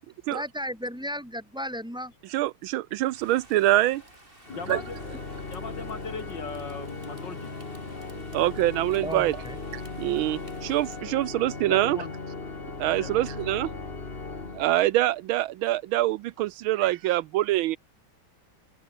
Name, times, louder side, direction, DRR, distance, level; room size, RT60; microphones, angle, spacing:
voice 1, 0.3-2.1 9.0-9.6, equal, ahead, 5.2 m, -34 dB
voice 2, 2.3-4.0 4.7-4.8 8.1-9.4 9.7-12.0 12.8-13.7 14.5-17.8, right 15 dB, 80° right, 1.4 m, -25 dB
Rain, 3.1-11.1, right 1 dB, 25° right, 7.3 m, -54 dB
Organ, 4.4-15.2, left 3 dB, 30° left, 2.4 m, -38 dB
voice 3, 4.5-5.0 5.4-7.5 11.7-12.1 13.0-13.2, left 4 dB, 60° left, 3.4 m, -38 dB
omnidirectional pair, 2.3 m